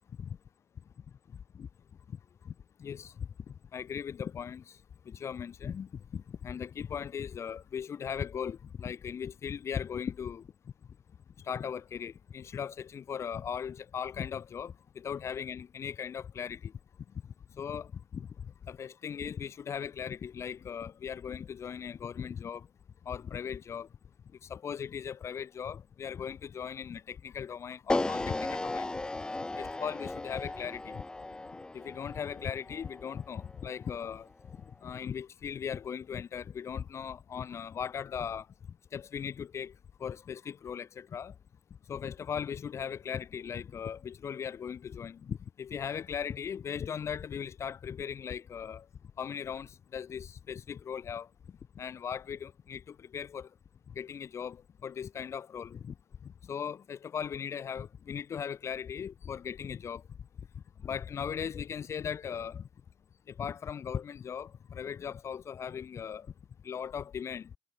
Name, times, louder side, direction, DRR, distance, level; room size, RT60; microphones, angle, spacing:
voice 1, 2.8-3.1 3.5-4.8 5.1-10.4 11.4-16.7 17.6-18.3 18.7-22.7 23.1-23.9 24.4-28.9 29.5-31.0 31.7-34.3 34.8-38.5 38.9-39.7 40.0-41.3 41.9-48.9 49.2-51.3 51.8-53.5 54.0-55.9 56.2-60.0 60.8-62.6 63.3-66.3 66.6-67.5, left 7 dB, 65° left, 5.8 m, -38 dB
sound 1, 27.9-34.1, left 2 dB, 15° left, 5.4 m, -36 dB
wide cardioid pair, 150°, 5 cm